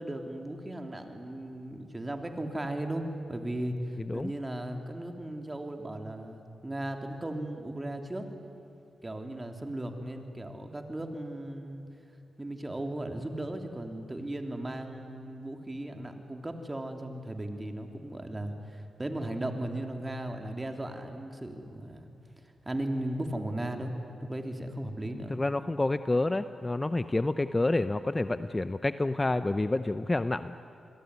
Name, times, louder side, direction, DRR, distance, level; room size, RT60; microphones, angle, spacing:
voice 1, 0.0-8.3 9.0-11.8 12.4-22.1 22.4-23.9 24.2-25.4, right 1 dB, 20° right, 4 dB, 3.3 m, -36 dB
voice 2, 25.3-30.5, left 2 dB, 25° left, 12 dB, 0.8 m, -28 dB
28.5 x 22.0 x 9.7 m, 2.6 s
cardioid pair, 70°, 0 cm